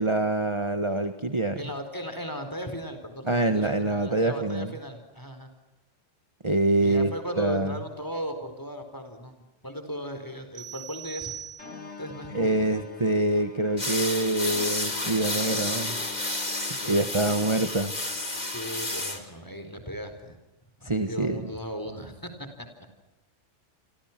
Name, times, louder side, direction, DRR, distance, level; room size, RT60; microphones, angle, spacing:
voice 1, 0.0-1.6 3.3-4.7 6.4-7.8 12.3-16.0 16.8-18.0 20.8-21.5, right 2 dB, 25° right, 8 dB, 1.4 m, -25 dB
voice 2, 1.6-5.5 6.8-11.4 12.0-12.6 16.8-17.4 18.5-20.4 20.8-22.7, equal, 15° left, 7 dB, 4.4 m, -37 dB
sound 1, 10.5-12.1, right 10 dB, 65° right, 3.6 m, -41 dB
sound 2, 11.6-19.2, left 4 dB, 75° left, 2.4 m, -45 dB
sound 3, 13.8-19.2, left 2 dB, 35° left, 3.2 m, -31 dB
29.5 x 25.0 x 6.0 m, 1.0 s
omnidirectional pair, 1.3 m